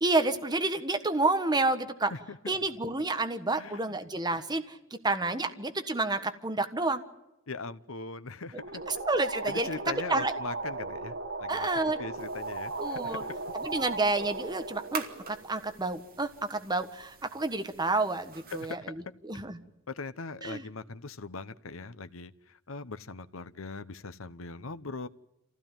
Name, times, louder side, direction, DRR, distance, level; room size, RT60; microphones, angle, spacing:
voice 1, 0.0-2.1 2.5-7.0 8.9-10.3 11.5-12.0 12.8-13.2 13.6-18.9 19.2-19.6 20.4-20.6, right 2 dB, 20° right, 8 dB, 1.5 m, -29 dB
voice 2, 7.5-8.8 9.5-13.3 18.5-18.7 19.9-25.1, left 3 dB, 75° left, 13 dB, 1.0 m, -40 dB
sound 1, 8.6-16.0, right 3 dB, 65° right, 2.9 m, -37 dB
sound 2, 12.2-18.7, right 5 dB, 45° right, 2.5 m, -46 dB
27.0 x 16.0 x 9.0 m, 0.94 s
head